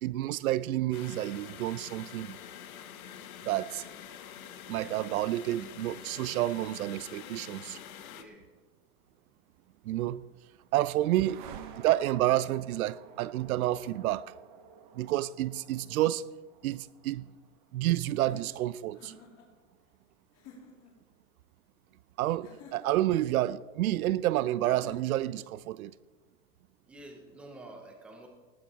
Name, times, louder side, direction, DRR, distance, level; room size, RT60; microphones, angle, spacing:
voice 1, 0.0-2.4 3.4-3.8 4.7-7.8 9.8-10.2 10.7-11.4 11.8-14.3 14.9-16.2 16.6-17.3 17.7-19.1 22.2-25.9, right 14 dB, 85° right, 0.7 m, -29 dB
sound 1, 0.9-8.2, left 9 dB, 80° left, 1.3 m, -46 dB
voice 2, 8.1-8.5 26.8-28.3, right 1 dB, 5° right, 0.5 m, -49 dB
sound 2, 10.2-20.0, right 8 dB, 35° right, 1.0 m, -52 dB
sound 3, 18.2-19.5 20.3-20.9 22.4-23.2 24.6-25.4, left 4 dB, 30° left, 3.0 m, -52 dB
19.0 x 8.8 x 4.8 m
supercardioid pair, 175°, 41 cm